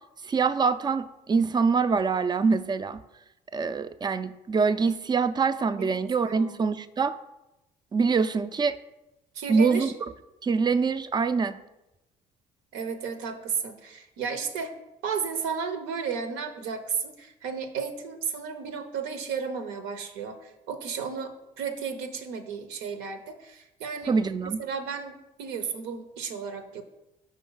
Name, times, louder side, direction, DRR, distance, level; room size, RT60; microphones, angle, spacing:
voice 1, 0.2-3.0 3.5-7.1 7.9-8.8 9.5-9.9 10.4-11.6 24.1-24.6, right 5 dB, 20° right, 13 dB, 0.4 m, -24 dB
voice 2, 5.8-6.6 9.3-9.9 12.7-14.7 15.0-24.2 24.6-26.8, right 6 dB, 70° right, 7 dB, 0.6 m, -33 dB
5.3 x 5.0 x 3.8 m, 0.94 s
figure-of-eight pair, 50°, 21 cm